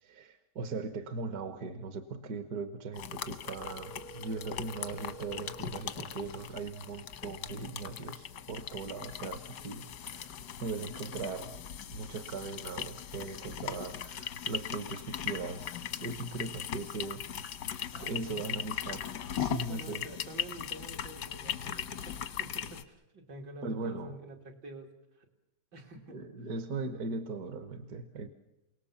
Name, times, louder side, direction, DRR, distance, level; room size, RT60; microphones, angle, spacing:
voice 1, 0.0-10.3 10.6-11.5 11.9-17.2 18.0-19.0 19.4-20.0 23.6-24.1 26.1-28.3, right 4 dB, 65° right, 9 dB, 1.6 m, -39 dB
sound 1, 2.9-22.8, left 9 dB, 90° left, 1.7 m, -39 dB
Telephone, 3.6-5.6, right 3 dB, 30° right, 0.6 m, -49 dB
voice 2, 17.9-18.6 19.7-25.3 25.7-26.3, right 2 dB, 85° right, 2 dB, 3.2 m, -48 dB
28.5 x 18.5 x 7.1 m, 0.95 s
omnidirectional pair, 1.8 m